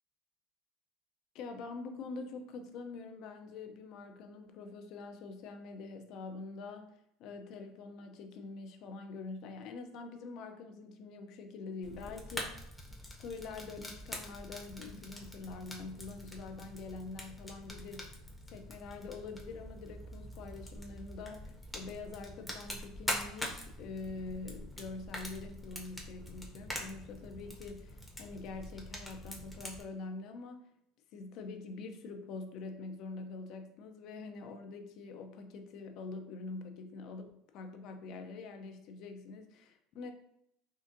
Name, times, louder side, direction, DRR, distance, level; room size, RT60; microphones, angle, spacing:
voice 1, 1.3-12.6 13.1-18.1 18.5-30.7 31.1-40.1, left 3 dB, 60° left, 6 dB, 0.4 m, -45 dB
Fire, 11.8-29.8, left 1 dB, 5° left, 0.7 m, -44 dB
3.7 x 2.5 x 2.5 m, 0.75 s
supercardioid pair, 105°, 0 cm